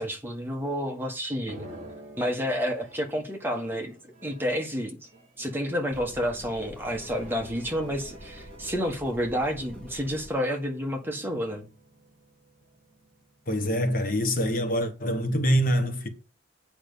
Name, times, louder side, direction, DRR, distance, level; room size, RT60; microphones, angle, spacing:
voice 1, 0.0-1.7 2.2-4.0 4.2-5.0 5.4-11.7, equal, 10° right, 1.5 m, -30 dB
sound 1, 0.7-1.2 1.5-13.8, right 1 dB, 35° right, 3.1 m, -51 dB
sound 2, 5.9-10.3, equal, 5° left, 2.5 m, -46 dB
voice 2, 13.5-16.1, equal, 45° left, 1.2 m, -25 dB
8.8 x 5.3 x 7.0 m
head